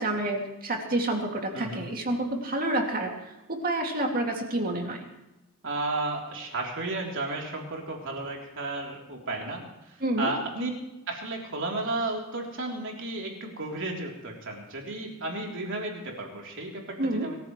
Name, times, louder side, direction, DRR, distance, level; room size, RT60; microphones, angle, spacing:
voice 1, 0.0-3.1 3.5-5.0 10.0-10.3 17.0-17.3, right 1 dB, 40° right, 2 dB, 2.5 m, -28 dB
voice 2, 1.5-1.9 5.6-9.6 10.2-10.7 11.1-17.4, right 2 dB, 60° right, -1 dB, 3.6 m, -33 dB
24.0 x 14.5 x 3.3 m, 0.95 s
head